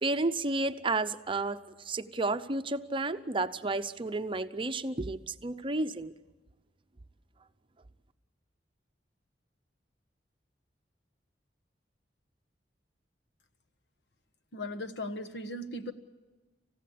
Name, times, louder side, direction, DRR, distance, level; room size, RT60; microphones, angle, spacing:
voice 1, 0.0-6.1, right 2 dB, 30° right, 10 dB, 0.8 m, -32 dB
voice 2, 14.5-15.9, left 1 dB, 80° left, 7 dB, 1.4 m, -37 dB
28.5 x 15.5 x 8.6 m, 1.2 s
head